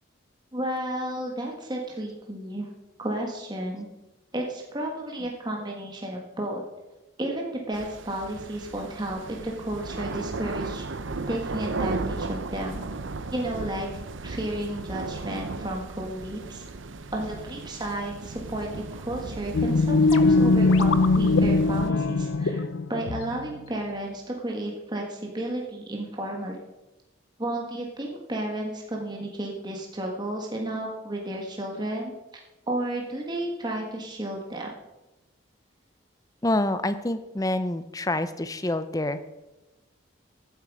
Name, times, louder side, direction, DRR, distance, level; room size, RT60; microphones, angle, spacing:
voice 1, 0.5-2.7 3.0-3.9 4.3-6.6 7.2-10.9 11.3-12.8 13.3-13.9 14.2-16.6 17.1-22.6 22.9-26.6 27.4-32.1 32.7-34.7, right 1 dB, 20° right, 0 dB, 1.7 m, -32 dB
sound 1, 7.7-21.9, right 3 dB, 70° right, 0.7 m, -35 dB
sound 2, 19.5-23.8, left 3 dB, 85° left, 0.7 m, -21 dB
voice 2, 36.4-39.2, left 1 dB, 15° left, 11 dB, 0.6 m, -27 dB
15.5 x 9.3 x 4.9 m, 1.0 s
head